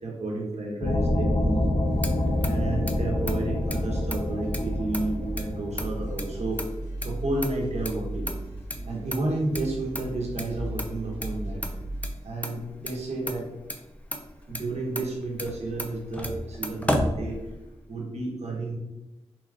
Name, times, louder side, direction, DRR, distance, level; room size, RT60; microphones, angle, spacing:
voice 1, 0.0-1.7 2.4-6.6 7.0-8.3 8.9-11.6 12.2-13.5 14.5-17.4 17.9-18.8, right 2 dB, 70° right, -2 dB, 1.2 m, -31 dB
sound 1, 0.8-6.4, left 1 dB, 50° left, 0.7 m, -27 dB
Motor vehicle (road), 1.6-17.9, left 1 dB, 10° left, 0.6 m, -36 dB
sound 2, 3.5-12.1, right 1 dB, 70° left, 1.5 m, -36 dB
4.1 x 3.0 x 2.5 m, 1.0 s
cardioid pair, 45°, 12 cm